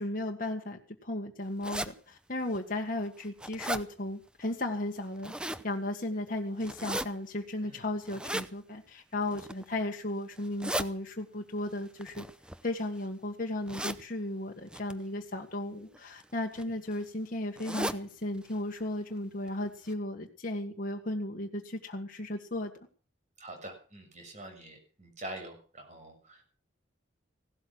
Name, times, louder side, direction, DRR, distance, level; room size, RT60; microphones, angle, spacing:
voice 1, 0.0-5.3 5.6-12.2 12.6-22.7, left 1 dB, 45° left, 1 dB, 1.7 m, -35 dB
sound 1, 1.6-1.9 2.5-2.6 3.1-3.8 5.0-5.6 6.6-7.1 8.1-8.5 9.2-9.6 10.4-10.9 12.0-13.0 13.7-14.0 14.7-14.9 15.9-16.2 16.6-16.7 16.9-17.0 17.6-18.0 18.4-18.5 18.8-18.9 19.5-19.6 19.9-20.0, right 1 dB, 5° right, 0.7 m, -36 dB
voice 2, 23.4-26.4, right 1 dB, 35° right, 4 dB, 6.6 m, -45 dB
17.0 x 12.5 x 6.2 m, 0.39 s
head